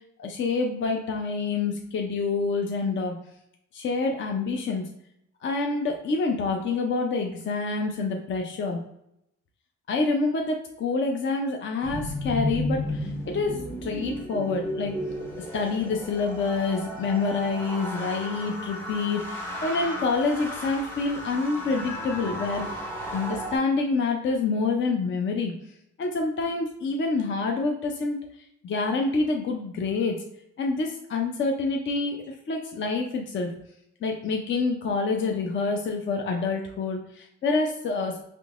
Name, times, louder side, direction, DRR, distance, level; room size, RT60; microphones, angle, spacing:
voice 1, 0.2-3.1 3.7-4.8 5.4-8.8 9.9-15.0 15.4-22.7 23.1-25.5 26.0-28.2 28.6-30.2 30.6-33.5 34.0-38.2, left 3 dB, 40° left, 2 dB, 0.5 m, -27 dB
sound 1, 11.8-23.6, equal, 10° left, 0.9 m, -34 dB
3.6 x 2.8 x 2.4 m, 0.79 s
cardioid pair, 90°, 30 cm